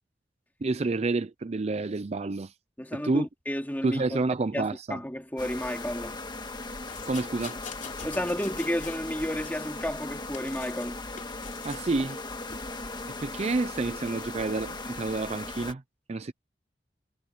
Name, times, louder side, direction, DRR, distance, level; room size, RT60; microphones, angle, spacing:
voice 1, 0.6-2.5 2.9-3.3 3.8-5.0 7.1-7.6 11.6-12.2 13.2-15.8 16.1-16.3, right 3 dB, 35° right, 0.5 m, -29 dB
voice 2, 2.8-4.0 4.5-6.2 8.0-11.0, equal, 10° left, 2.6 m, -32 dB
sound 1, 5.4-15.7, left 2 dB, 25° left, 1.7 m, -38 dB
sound 2, 6.9-9.0 9.4-10.9 11.2-11.9 12.5-12.7, left 6 dB, 45° left, 3.7 m, -45 dB
head